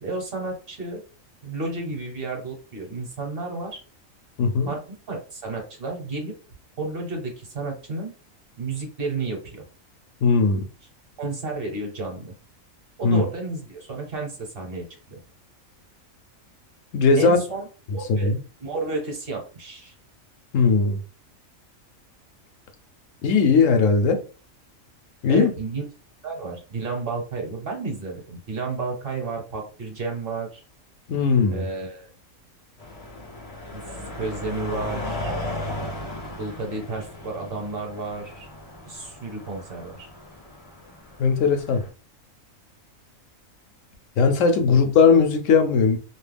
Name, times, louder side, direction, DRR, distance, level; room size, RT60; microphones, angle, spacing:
voice 1, 0.0-1.0 1.4-3.8 4.7-6.3 6.8-8.1 8.6-9.6 11.2-12.3 13.0-15.2 17.2-17.7 17.9-18.3 18.6-19.9 25.3-25.9 26.2-30.6 31.5-32.1 33.7-35.3 36.4-38.5 38.9-40.1 44.6-44.7, right 3 dB, 50° right, 1.0 m, -32 dB
voice 2, 4.4-4.7 10.2-10.6 13.0-13.2 16.9-17.4 18.1-18.4 20.5-21.0 23.2-24.2 25.2-25.5 31.1-31.6 41.2-41.8 44.2-46.0, left 5 dB, 70° left, 1.0 m, -18 dB
sound 1, 32.8-41.9, left 1 dB, 35° left, 0.6 m, -36 dB
2.5 x 2.1 x 3.3 m
omnidirectional pair, 1.4 m